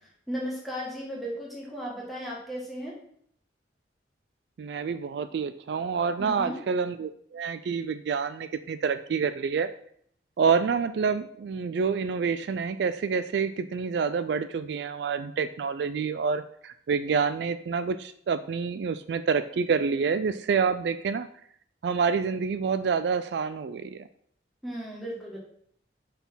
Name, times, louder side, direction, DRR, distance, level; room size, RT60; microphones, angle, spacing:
voice 1, 0.0-3.0 6.2-6.6 24.6-25.4, equal, ahead, -5 dB, 1.7 m, -35 dB
voice 2, 4.6-9.7 10.4-21.3 21.8-24.0, right 5 dB, 65° right, 11 dB, 0.3 m, -27 dB
5.8 x 4.2 x 5.5 m, 0.65 s
head